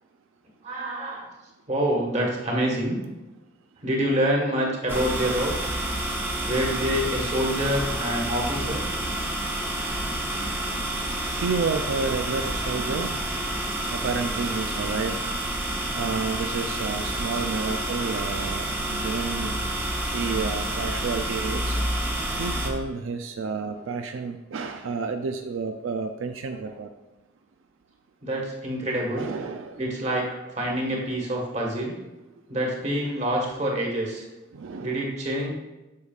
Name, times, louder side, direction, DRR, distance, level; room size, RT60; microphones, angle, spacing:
voice 1, 0.6-1.3 1.7-3.0 3.8-5.6 6.5-8.8 28.2-29.3 29.8-32.0 32.5-34.2 34.8-35.5, equal, 35° right, -1 dB, 1.6 m, -26 dB
sound 1, 4.9-22.7, right 1 dB, 10° right, 0.8 m, -29 dB
voice 2, 5.8-6.2 11.3-13.2 13.9-15.2 15.9-19.5 20.1-21.8 22.3-26.9 29.2-29.9 30.7-31.0 34.5-35.1, right 4 dB, 90° right, 6 dB, 0.4 m, -31 dB
8.5 x 6.3 x 2.4 m, 1.0 s
head